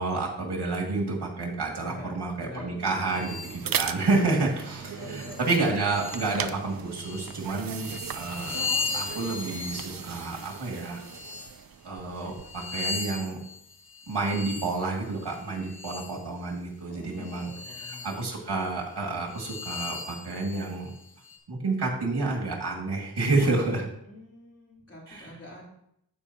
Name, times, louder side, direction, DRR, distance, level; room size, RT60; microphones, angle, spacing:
voice 1, 0.0-8.6 8.9-11.0 11.8-13.4 14.1-20.9 21.5-23.9 25.1-25.3, right 3 dB, 85° right, -1 dB, 2.3 m, -29 dB
voice 2, 1.8-2.9 5.0-5.5 16.9-18.1 24.0-25.7, left 2 dB, 35° left, -5 dB, 3.9 m, -45 dB
sound 1, 2.8-12.7, right 8 dB, 60° right, 0.5 m, -38 dB
sound 2, 3.1-3.6 4.3-4.4 4.9-6.5 6.9-11.6 12.2-16.2 17.1-18.2 18.6-18.7 19.3-21.4, left 4 dB, 65° left, 1.9 m, -38 dB
16.0 x 5.4 x 2.9 m, 0.74 s
wide cardioid pair, 90°, 39 cm